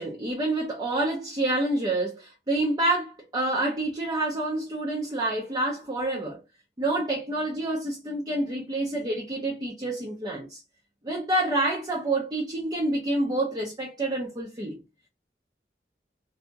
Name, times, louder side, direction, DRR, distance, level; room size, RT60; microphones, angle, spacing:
voice 1, 0.0-6.4 6.8-10.6 11.0-14.8, right 2 dB, 25° right, 0.6 m, -28 dB
2.7 x 2.7 x 2.2 m
head